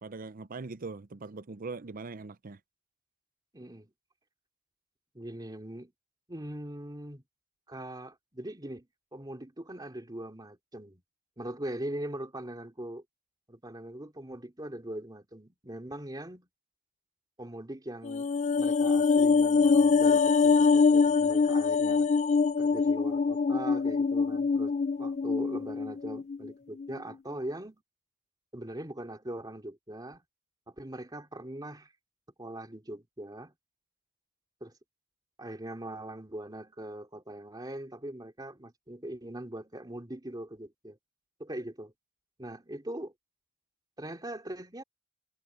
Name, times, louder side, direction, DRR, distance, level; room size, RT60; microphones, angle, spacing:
voice 1, 0.0-2.6, right 3 dB, 40° right, 0.6 m, -41 dB
voice 2, 3.5-3.9 5.1-5.9 6.3-7.2 7.7-8.9 9.1-11.0 11.4-13.0 13.5-16.5 17.4-18.3 18.6-22.1 22.6-27.8 28.5-30.2 30.7-31.9 32.4-33.5 34.6-34.7 35.4-41.0 41.4-41.9 42.4-43.1 44.0-44.8, right 1 dB, 20° right, 2.7 m, -41 dB
sound 1, 18.0-26.5 26.8-26.9, left 4 dB, 30° left, 0.4 m, -24 dB
head